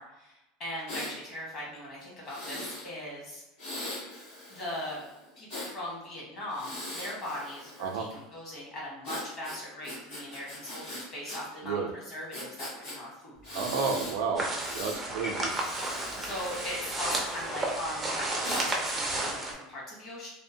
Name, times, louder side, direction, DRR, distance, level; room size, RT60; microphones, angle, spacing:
voice 1, 0.0-3.4 4.5-5.0 5.4-13.4 16.2-20.3, left 1 dB, 35° left, -5 dB, 1.2 m, -39 dB
Breathing, 0.9-1.2 2.2-2.9 3.6-5.7 6.5-8.1 9.0-11.4 11.7-11.8 12.3-13.0 13.4-14.2 14.5-15.0 15.5-17.6 18.4-18.7, left 1 dB, 70° left, 1.5 m, -40 dB
sound 1, 13.3-18.6, left 1 dB, 90° left, 1.2 m, -48 dB
voice 2, 13.5-15.5, right 5 dB, 70° right, 2 dB, 0.4 m, -31 dB
sound 2, 14.3-19.5, right 2 dB, 10° right, 0.4 m, -32 dB
2.8 x 2.1 x 2.6 m, 0.95 s
supercardioid pair, 155°, 0 cm